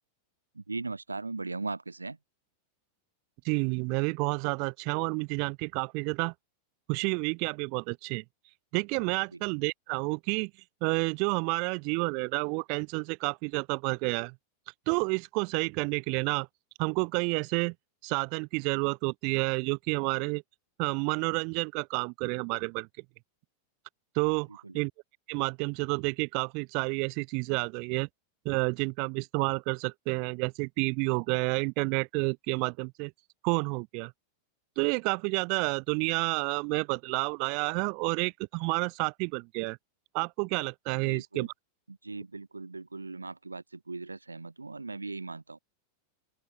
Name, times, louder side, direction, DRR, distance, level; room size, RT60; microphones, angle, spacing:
voice 1, 0.5-2.2 9.3-9.4 24.5-24.8 41.0-41.5 41.9-45.6, right 3 dB, 80° right, 5.7 m, -39 dB
voice 2, 3.4-6.3 6.9-8.2 8.7-10.5 10.8-14.3 14.9-16.5 16.8-17.7 18.0-20.4 20.8-22.9 24.1-24.9 25.3-28.1 28.4-33.1 33.4-34.1 34.8-39.8 40.1-41.5, right 36 dB, 45° right, 1.7 m, -30 dB
open air
figure-of-eight pair, 90°, 0 cm